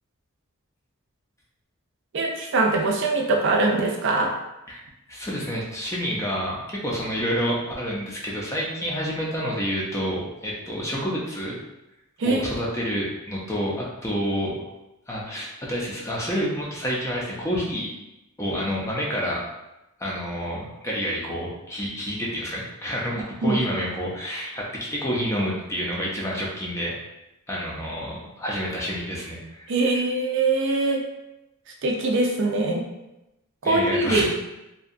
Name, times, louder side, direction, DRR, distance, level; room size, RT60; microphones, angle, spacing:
voice 1, 2.1-4.3 12.2-12.5 23.4-23.6 29.7-31.0 31.8-32.8 33.6-34.3, right 2 dB, 60° right, 0 dB, 0.4 m, -22 dB
voice 2, 4.7-11.6 12.2-14.6 15.1-17.9 18.4-19.4 20.0-26.9 27.5-30.0 33.6-34.3, equal, 15° left, -4 dB, 0.4 m, -29 dB
2.7 x 2.2 x 2.5 m, 0.94 s
head